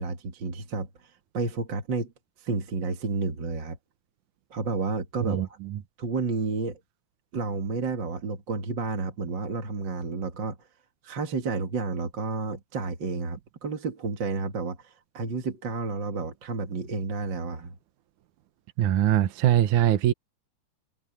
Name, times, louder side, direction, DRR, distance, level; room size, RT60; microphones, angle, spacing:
voice 1, 0.0-2.1 2.4-3.8 4.5-5.6 6.0-6.8 7.3-10.6 11.0-17.7, right 4 dB, 40° right, 2.2 m, -31 dB
voice 2, 18.8-20.1, right 12 dB, 75° right, 2.4 m, -22 dB
omnidirectional pair, 3.6 m